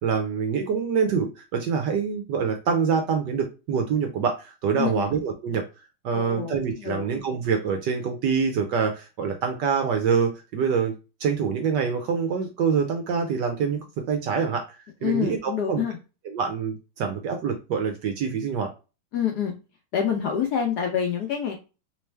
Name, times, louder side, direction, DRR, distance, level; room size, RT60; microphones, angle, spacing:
voice 1, 0.0-5.6 6.0-10.9 11.2-15.8 16.3-18.7, right 6 dB, 70° right, 5 dB, 1.1 m, -25 dB
voice 2, 4.8-5.1 6.1-7.1 15.0-16.0 19.1-19.5 19.9-21.6, left 8 dB, 70° left, 2 dB, 1.0 m, -27 dB
3.3 x 3.2 x 3.3 m, 0.30 s
omnidirectional pair, 2.3 m